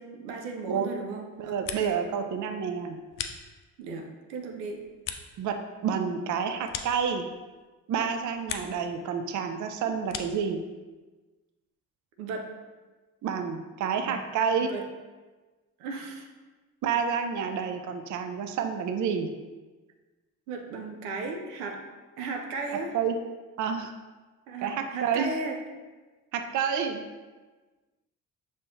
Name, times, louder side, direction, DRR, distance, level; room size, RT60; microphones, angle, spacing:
voice 1, 0.0-2.0 3.8-4.9 12.2-12.5 14.1-14.2 14.6-14.9 15.8-16.3 20.5-21.8 22.2-23.0 24.5-25.6, right 3 dB, 80° right, 3 dB, 0.6 m, -36 dB
sound 1, 1.3-2.2 2.5-3.9 4.3-7.6 8.0-8.9 9.2-10.5, left 8 dB, 45° left, 0.5 m, -41 dB
voice 2, 1.4-3.0 5.4-7.3 7.9-10.6 13.2-14.7 16.8-19.3 22.9-23.1 23.6-23.9 24.6-25.3 26.3-27.0, right 7 dB, 40° right, 6 dB, 0.5 m, -29 dB
5.3 x 3.4 x 2.7 m, 1.3 s
hypercardioid pair, 45°, 46 cm